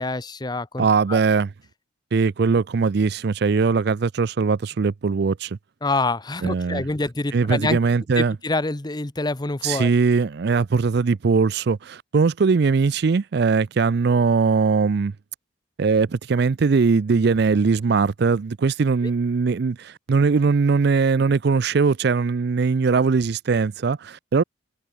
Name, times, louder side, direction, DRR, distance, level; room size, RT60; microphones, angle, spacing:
voice 1, 0.0-1.2 5.8-7.8 8.2-9.9, left 2 dB, 20° left, 0.8 m, -26 dB
voice 2, 0.8-1.5 2.1-5.6 6.4-6.8 7.3-8.3 9.6-15.1 15.8-24.4, right 4 dB, 55° right, 0.4 m, -20 dB
head